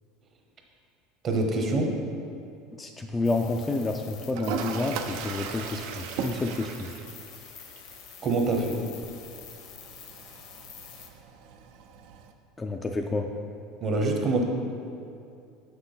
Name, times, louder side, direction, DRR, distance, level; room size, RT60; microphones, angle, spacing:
voice 1, 1.2-1.9 8.2-8.8 13.8-14.4, right 2 dB, 35° right, 2 dB, 0.9 m, -25 dB
voice 2, 2.8-6.9 12.6-13.3, left 3 dB, 15° left, 3 dB, 0.3 m, -29 dB
sound 1, 3.2-11.1, left 8 dB, 60° left, 0.7 m, -47 dB
Toilet flush, 4.3-12.3, right 6 dB, 70° right, 0.4 m, -38 dB
6.1 x 5.9 x 3.9 m, 2.5 s
supercardioid pair, 135°, 0 cm